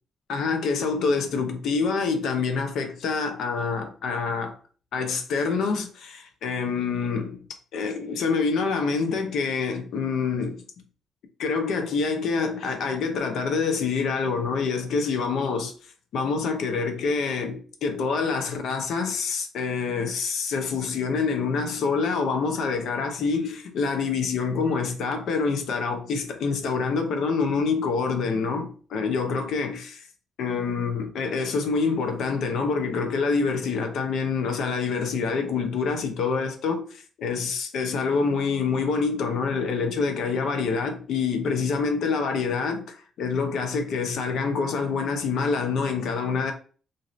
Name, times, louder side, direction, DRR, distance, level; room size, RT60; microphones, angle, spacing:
voice 1, 0.3-4.6 4.9-7.4 7.7-10.6 11.4-15.7 16.1-30.1 30.4-46.5, left 4 dB, 75° left, 0.6 m, -26 dB
2.6 x 2.5 x 3.0 m
cardioid pair, 90°, 0 cm